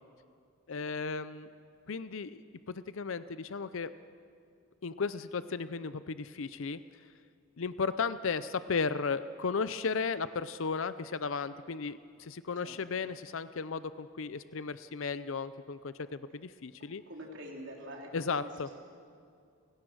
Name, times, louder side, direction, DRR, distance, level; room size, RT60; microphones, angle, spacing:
voice 1, 0.7-1.5 1.9-3.9 4.8-6.8 7.6-17.0 18.1-18.7, left 5 dB, 65° left, 14 dB, 0.6 m, -35 dB
voice 2, 16.8-18.1 18.4-18.5, equal, 55° right, -1 dB, 3.9 m, -46 dB
30.0 x 17.0 x 6.3 m, 2.4 s
head